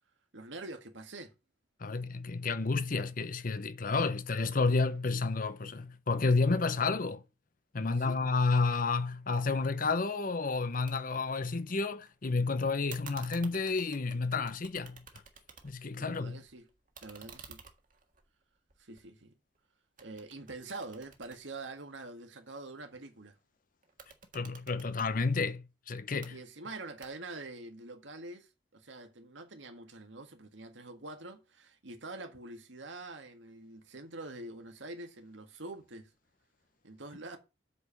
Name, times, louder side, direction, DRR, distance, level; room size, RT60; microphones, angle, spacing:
voice 1, 0.3-1.3 7.8-8.2 16.0-16.7 17.0-17.6 18.8-19.3 20.0-23.4 26.3-36.1 36.8-37.4, right 2 dB, 80° right, 1.9 m, -45 dB
voice 2, 1.8-7.2 7.7-15.0 15.6-16.4 24.3-26.4, left 3 dB, 45° left, 0.8 m, -30 dB
sound 1, 10.9-11.0 11.3-12.1 12.9-16.0 16.3-19.6 20.0-22.2 23.8-25.1 26.0-26.3 27.0-27.5, right 6 dB, 45° right, 1.7 m, -53 dB
8.2 x 4.9 x 7.0 m
head